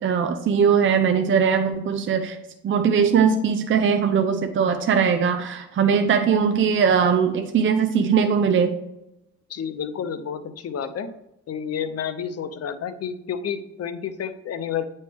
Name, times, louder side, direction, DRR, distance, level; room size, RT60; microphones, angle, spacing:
voice 1, 0.0-2.4 2.6-8.8, right 6 dB, 40° right, 7 dB, 0.6 m, -20 dB
voice 2, 9.5-11.1 11.5-14.9, left 7 dB, 50° left, 10 dB, 0.7 m, -30 dB
9.0 x 3.2 x 3.5 m, 0.87 s
cardioid pair, 90°, 32 cm